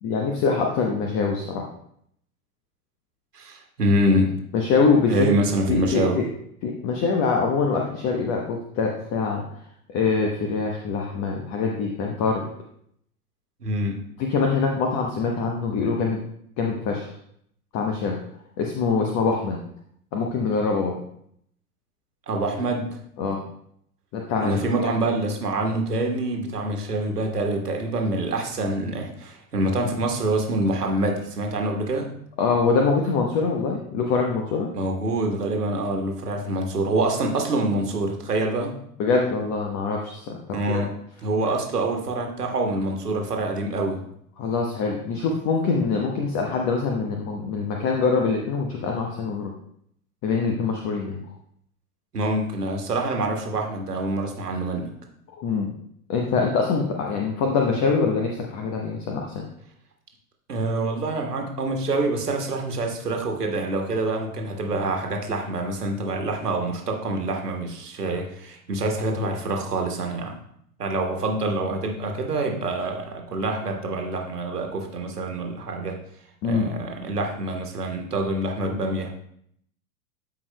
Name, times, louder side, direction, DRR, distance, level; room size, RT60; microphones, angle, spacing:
voice 1, 0.0-1.7 4.5-5.3 5.7-6.3 6.6-9.4 9.9-12.5 14.2-16.2 16.6-17.1 17.7-18.2 18.6-19.6 20.1-21.0 23.2-23.4 24.1-24.9 32.4-34.7 39.0-40.8 41.4-41.5 44.4-49.5 50.2-51.2 55.4-55.7 56.1-59.4 76.4-76.7, left 4 dB, 35° left, 1 dB, 1.0 m, -24 dB
voice 2, 3.3-4.3 5.1-6.2 13.6-14.0 22.3-23.0 24.4-32.1 34.7-38.7 40.5-40.9 41.2-44.0 52.1-54.9 60.5-70.4 70.8-76.0 76.4-79.1, right 2 dB, 85° right, 2 dB, 1.4 m, -26 dB
12.0 x 4.8 x 2.2 m, 0.69 s
figure-of-eight pair, 90°, 46 cm